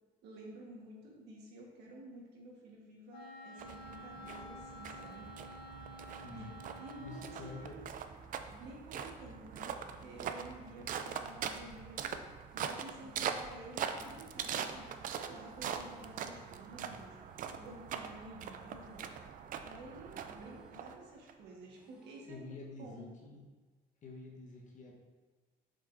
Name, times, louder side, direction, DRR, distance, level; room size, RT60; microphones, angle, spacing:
voice 1, 0.2-5.3 6.3-7.9 8.6-19.1 19.6-23.1, right 1 dB, 80° right, -2 dB, 1.5 m, -52 dB
Wind instrument woodwind instrument, 3.1-7.7, left 1 dB, 85° left, 1.2 m, -50 dB
sound 1, 3.6-21.3, right 7 dB, 50° right, 0.4 m, -42 dB
voice 2, 6.2-6.5 7.0-7.7 13.1-13.4 22.3-23.4 24.0-24.9, left 3 dB, 45° left, -1 dB, 1.3 m, -48 dB
sound 2, 8.3-9.0 9.8-10.5 11.3-12.0 12.8-13.5 14.3-15.0 15.8-16.5 17.3-18.0 18.7-19.4 20.2-20.9 21.7-22.4, left 1 dB, 5° right, 1.1 m, -62 dB
7.1 x 5.3 x 2.7 m, 1.3 s
cardioid pair, 110°, 17 cm